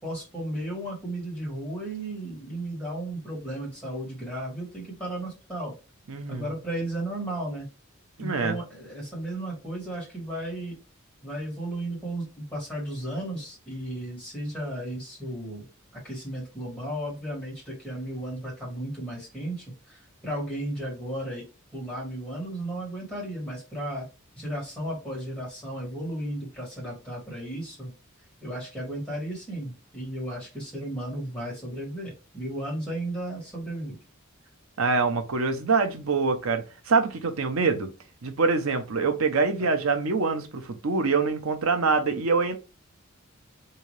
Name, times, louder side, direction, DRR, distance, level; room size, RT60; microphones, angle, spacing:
voice 1, 0.0-5.7 6.3-7.7 8.2-10.8 11.2-15.6 15.9-21.4 21.7-24.0 24.4-27.9 28.4-34.0, right 1 dB, 5° left, 2.3 m, -34 dB
voice 2, 6.1-6.5 8.2-8.6 34.8-37.9 38.2-42.6, right 4 dB, 85° right, 0.7 m, -25 dB
3.8 x 2.8 x 3.2 m
head